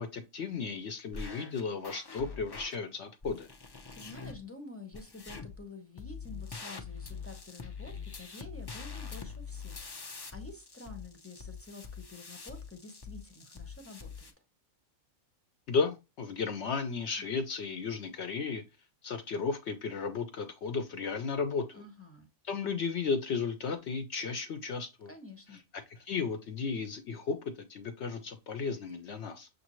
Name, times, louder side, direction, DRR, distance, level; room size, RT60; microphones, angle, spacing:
voice 1, 0.0-3.5 15.7-18.6 19.0-21.8 22.4-25.1 25.9-27.4 27.7-29.5, left 5 dB, 65° left, 0.9 m, -34 dB
sound 1, 1.1-2.8 3.2-4.4 4.9-5.6 6.0-14.3, left 5 dB, 40° left, 0.3 m, -44 dB
voice 2, 3.9-14.3 21.7-22.3 25.1-25.6, left 2 dB, 15° left, 0.8 m, -49 dB
6.6 x 2.6 x 3.0 m
omnidirectional pair, 1.3 m